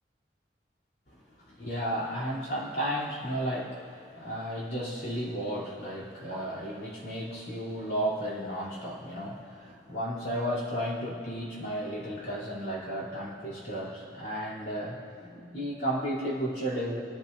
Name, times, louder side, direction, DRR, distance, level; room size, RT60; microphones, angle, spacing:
voice 1, 1.1-17.0, equal, 60° left, -7 dB, 3.1 m, -33 dB
23.5 x 10.5 x 2.6 m, 2.3 s
head